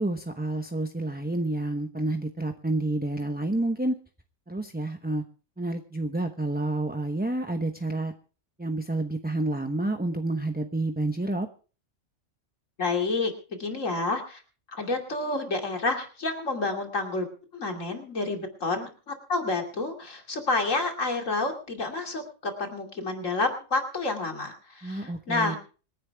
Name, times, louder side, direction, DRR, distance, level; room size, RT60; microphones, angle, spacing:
voice 1, 0.0-4.0 4.5-5.2 5.6-8.1 8.6-11.5 24.8-25.6, right 2 dB, 10° right, 6 dB, 0.9 m, -29 dB
voice 2, 12.8-14.4 14.7-17.3 17.5-25.6, left 3 dB, 85° left, 3 dB, 3.0 m, -29 dB
26.0 x 10.5 x 3.5 m, 0.38 s
omnidirectional pair, 1.3 m